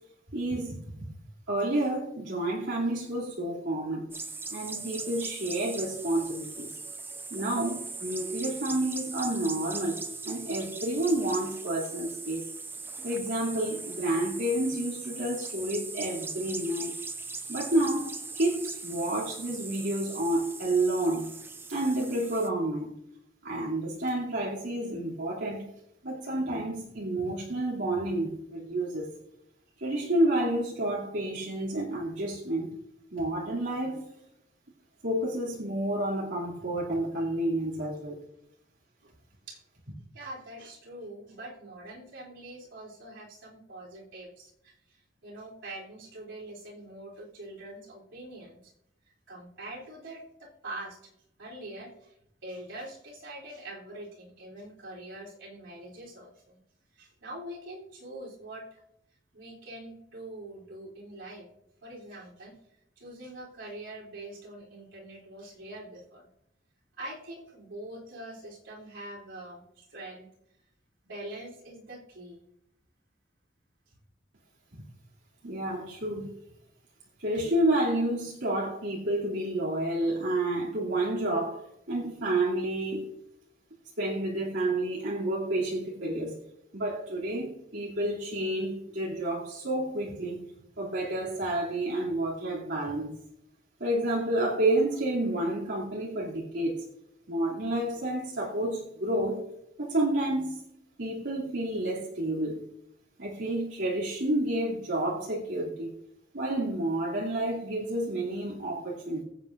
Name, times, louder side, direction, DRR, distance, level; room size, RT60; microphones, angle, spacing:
voice 1, 0.3-1.1 1.5-4.1 4.5-6.7 7.3-12.5 13.0-17.0 17.5-21.3 21.7-22.9 23.4-25.7 26.0-29.1 29.8-32.7 33.1-34.1 35.0-38.2 74.7-74.8 75.4-76.3 77.2-81.6 81.9-83.1 84.0-86.4 86.7-90.4 90.8-93.2 93.8-96.8 97.3-99.4 99.8-100.6 101.0-102.6 103.2-105.9 106.3-109.2, right 1 dB, 70° right, 2.7 m, -30 dB
sound 1, 4.1-22.5, right 4 dB, 10° right, 0.6 m, -40 dB
voice 2, 40.1-48.7 49.3-51.1 51.4-52.1 52.4-56.6 56.9-58.8 59.3-61.5 61.8-62.6 63.0-66.3 67.0-70.3 71.0-72.4, right 1 dB, 90° right, 3.4 m, -44 dB
22.5 x 8.2 x 2.6 m
head